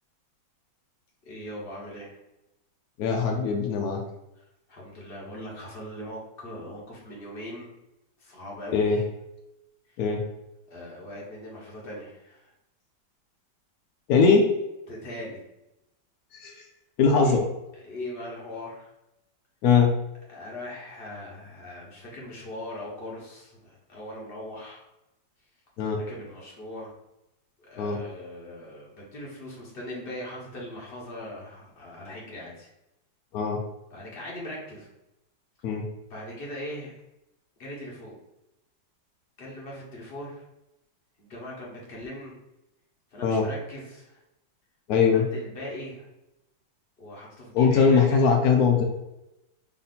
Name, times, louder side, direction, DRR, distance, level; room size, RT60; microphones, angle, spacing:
voice 1, 1.2-2.2 4.4-7.7 8.2-9.0 9.9-10.0 10.7-12.5 14.9-15.4 17.2-17.4 17.8-18.9 20.3-24.8 25.9-26.9 27.6-32.7 33.9-34.9 36.1-36.9 37.6-38.2 39.4-40.4 41.2-42.4 43.1-44.2 45.3-46.1 47.0-48.3, left 1 dB, 35° left, -4 dB, 1.2 m, -40 dB
voice 2, 3.0-4.0 8.7-9.0 10.0-10.2 14.1-14.5 16.3-16.6 17.0-17.4 19.6-19.9 25.8-26.0 27.8-28.0 33.3-33.6 35.6-35.8 43.2-43.4 44.9-45.3 47.5-48.8, left 5 dB, 75° left, 2 dB, 0.8 m, -21 dB
3.6 x 2.7 x 4.0 m, 0.91 s
omnidirectional pair, 2.1 m